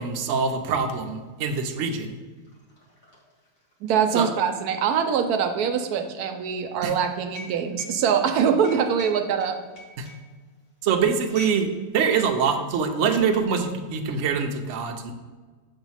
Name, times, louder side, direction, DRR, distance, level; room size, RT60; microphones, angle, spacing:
voice 1, 0.0-2.2 4.1-4.3 6.8-6.9 10.0-10.1 10.8-15.1, right 6 dB, 60° right, 4 dB, 0.9 m, -24 dB
sound 1, 1.3-1.4 1.7-11.7 12.0-12.2 12.9-13.5, left 1 dB, 65° left, 1.7 m, -45 dB
voice 2, 3.8-9.6, right 7 dB, 85° right, 6 dB, 1.1 m, -23 dB
7.0 x 3.0 x 5.5 m, 1.4 s
omnidirectional pair, 1.6 m